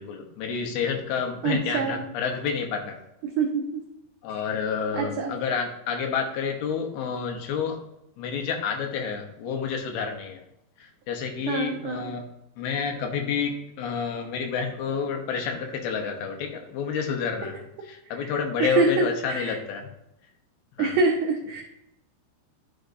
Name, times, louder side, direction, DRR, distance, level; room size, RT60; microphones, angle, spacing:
voice 1, 0.0-3.0 4.2-7.8 8.2-10.4 10.8-12.2 12.6-19.9 20.8-21.0, left 6 dB, 75° left, 4 dB, 2.8 m, -29 dB
voice 2, 1.4-2.0 3.4-3.8 4.9-5.3 11.5-12.1 18.6-19.5 20.8-21.6, right 4 dB, 85° right, 1 dB, 1.8 m, -25 dB
11.5 x 5.1 x 2.6 m, 0.83 s
omnidirectional pair, 4.8 m